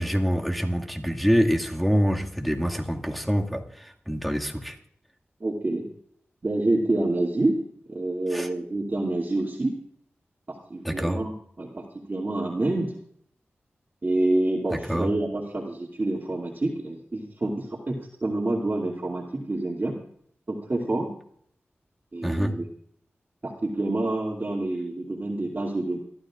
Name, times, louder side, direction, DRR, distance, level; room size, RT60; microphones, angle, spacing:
voice 1, 0.0-4.8 8.3-8.5 10.8-11.2 14.9-15.1 22.2-22.5, equal, ahead, 1 dB, 2.1 m, -25 dB
voice 2, 5.4-5.9 6.4-7.6 7.9-9.8 10.5-12.9 14.0-20.0 20.5-21.1 22.1-22.7 23.4-26.0, right 2 dB, 45° right, -4 dB, 2.6 m, -27 dB
28.5 x 12.5 x 2.5 m, 0.66 s
cardioid pair, 50°, 4 cm